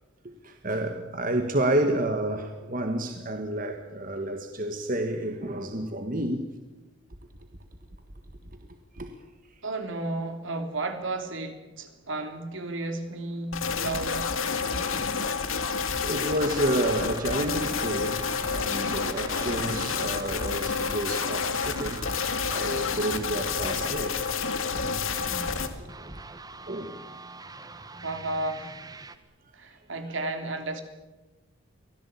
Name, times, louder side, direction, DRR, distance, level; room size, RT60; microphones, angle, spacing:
voice 1, 0.2-6.5 8.9-9.1 14.7-15.0 16.0-22.0 22.5-24.2 26.0-26.1 26.7-27.0, right 1 dB, 40° right, 1.7 m, -30 dB
voice 2, 9.6-14.3 15.7-15.8 28.0-28.8 29.5-30.8, right 2 dB, 70° right, 3.3 m, -33 dB
sound 1, 13.5-25.7, left 5 dB, 85° left, 2.3 m, -29 dB
sound 2, 15.5-29.2, right 3 dB, 20° right, 1.2 m, -44 dB
24.5 x 17.5 x 8.6 m
head